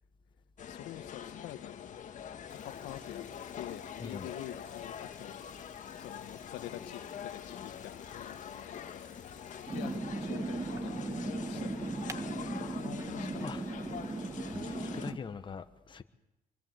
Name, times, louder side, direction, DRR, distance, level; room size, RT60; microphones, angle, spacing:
voice 1, 0.6-2.0 2.5-3.2 3.5-5.4 6.0-9.0 9.6-11.9 12.5-13.7, left 13 dB, 85° left, 1.5 m, -47 dB
sound 1, 0.6-15.1, left 8 dB, 50° left, 1.9 m, -44 dB
sound 2, 2.5-10.0, left 3 dB, 5° left, 7.6 m, -61 dB
sound 3, 9.7-15.2, right 3 dB, 20° right, 1.6 m, -37 dB
voice 2, 13.1-13.6 13.9-14.3 14.5-16.0, left 5 dB, 30° left, 1.4 m, -43 dB
24.5 x 24.0 x 8.1 m
cardioid pair, 110°, 17 cm